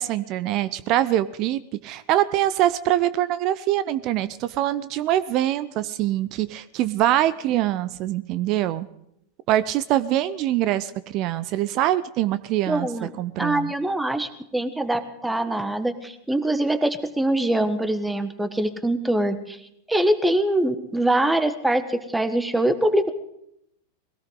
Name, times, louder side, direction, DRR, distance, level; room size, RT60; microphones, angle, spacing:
voice 1, 0.0-8.9 9.5-12.9 13.2-13.7, right 13 dB, 40° right, 15 dB, 0.7 m, -24 dB
voice 2, 12.7-13.1 13.4-19.6 19.9-23.1, right 1 dB, 5° right, 11 dB, 1.4 m, -23 dB
21.5 x 17.0 x 3.9 m, 0.79 s
figure-of-eight pair, 90°, 0 cm